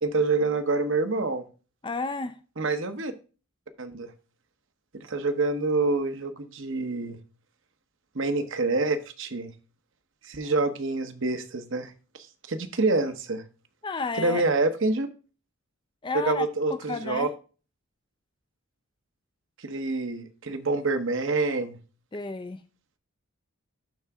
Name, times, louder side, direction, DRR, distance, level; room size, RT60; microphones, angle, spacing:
voice 1, 0.0-1.4 2.6-3.1 3.8-4.1 4.9-7.2 8.1-9.5 10.3-11.9 12.5-13.4 14.1-15.1 16.1-17.3 19.6-21.8, right 3 dB, 55° right, 1.0 m, -27 dB
voice 2, 1.8-2.4 13.8-14.4 16.0-17.3 22.1-22.6, left 3 dB, 20° left, 0.4 m, -32 dB
12.0 x 3.9 x 3.5 m
head